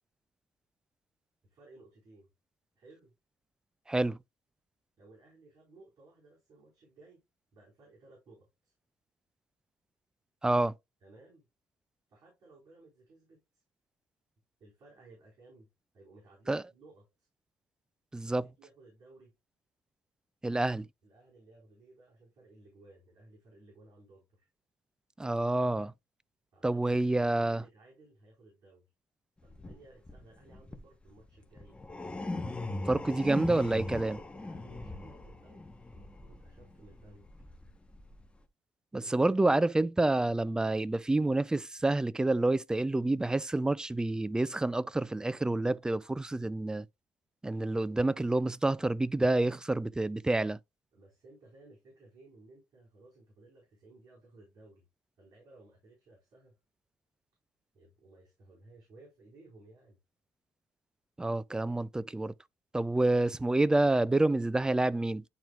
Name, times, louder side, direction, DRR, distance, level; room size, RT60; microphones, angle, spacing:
voice 1, 1.4-2.3 2.8-3.1 5.0-7.2 7.5-8.7 11.0-11.4 12.1-13.6 14.6-15.7 15.9-17.3 18.2-19.3 21.0-24.5 26.5-28.9 29.4-31.8 34.3-37.3 38.9-39.4 50.9-54.8 55.2-56.6 57.7-60.0, right 2 dB, 55° right, 4.3 m, -58 dB
voice 2, 3.9-4.2 10.4-10.7 16.5-16.6 18.1-18.5 20.4-20.9 25.2-25.9 26.6-27.6 32.9-34.2 38.9-46.9 47.4-50.6 61.2-62.3 62.7-65.2, right 2 dB, 10° right, 0.3 m, -28 dB
sound 1, 29.4-38.4, left 2 dB, 15° left, 1.0 m, -40 dB
10.5 x 4.5 x 2.4 m
cardioid pair, 115°, 7 cm